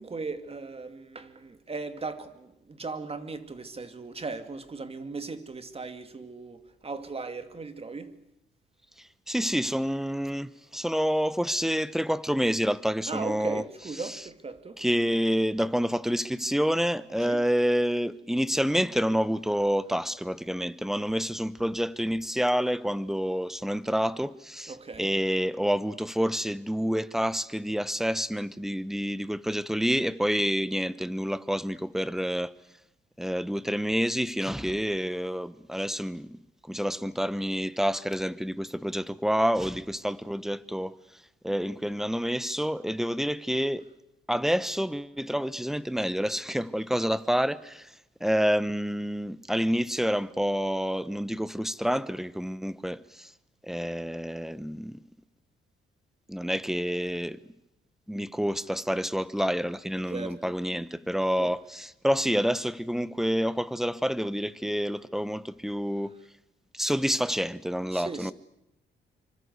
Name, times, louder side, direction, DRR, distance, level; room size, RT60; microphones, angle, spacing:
voice 1, 0.0-8.2 13.1-14.8 17.3-17.4 24.7-25.1 60.1-60.5 61.4-61.5 67.9-68.3, right 4 dB, 30° right, 2.5 m, -38 dB
voice 2, 9.3-13.6 14.0-14.2 14.8-32.5 33.2-36.4 36.7-40.9 41.4-43.8 44.3-47.9 48.2-53.3 53.6-55.0 56.3-57.4 58.1-66.1 66.7-68.3, equal, ahead, 1.1 m, -28 dB
26.0 x 25.0 x 8.2 m
cardioid pair, 90°, 20 cm